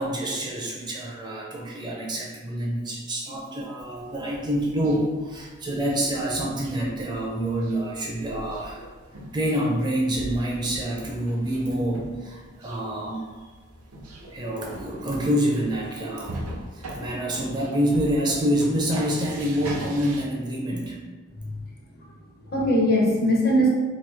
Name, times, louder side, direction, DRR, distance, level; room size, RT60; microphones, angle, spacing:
voice 1, 0.0-8.9 9.3-13.3 14.3-21.0, equal, 20° right, -3 dB, 0.4 m, -27 dB
sound 1, 3.8-20.2, right 1 dB, 90° right, 0.6 m, -41 dB
voice 2, 21.3-21.7 22.0-22.1 22.4-23.7, equal, 45° left, -2 dB, 0.7 m, -21 dB
2.9 x 2.6 x 3.4 m, 1.4 s
head